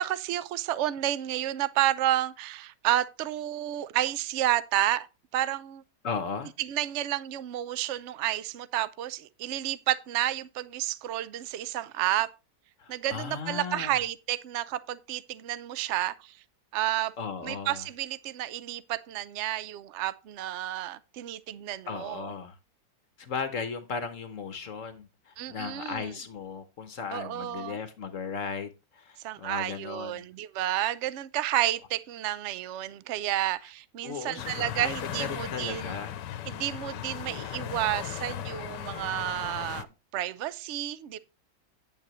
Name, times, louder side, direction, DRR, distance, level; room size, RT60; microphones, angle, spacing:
voice 1, 0.0-5.1 5.3-5.8 6.6-12.3 12.9-16.4 16.7-17.1 17.4-22.3 25.4-26.1 27.1-27.8 29.2-35.9 36.5-39.9 40.1-41.2, right 13 dB, 65° right, 0.7 m, -30 dB
voice 2, 6.0-6.5 12.8-14.0 17.2-17.8 21.9-22.6 23.2-30.3 34.0-36.2, left 5 dB, 55° left, 1.1 m, -36 dB
sound 1, 34.4-39.8, left 11 dB, 80° left, 1.3 m, -37 dB
9.0 x 8.8 x 3.0 m
omnidirectional pair, 1.9 m